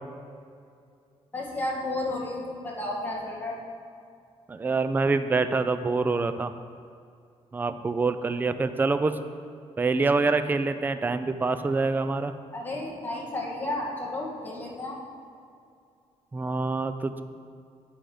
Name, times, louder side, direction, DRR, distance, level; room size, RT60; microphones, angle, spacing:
voice 1, 1.3-3.6 12.5-15.0, left 1 dB, 15° left, -3 dB, 2.0 m, -32 dB
voice 2, 4.5-6.5 7.5-9.2 9.8-12.3 16.3-17.2, right 3 dB, 15° right, 10 dB, 0.4 m, -26 dB
10.0 x 5.1 x 7.8 m, 2.4 s
cardioid pair, 145°, 11 cm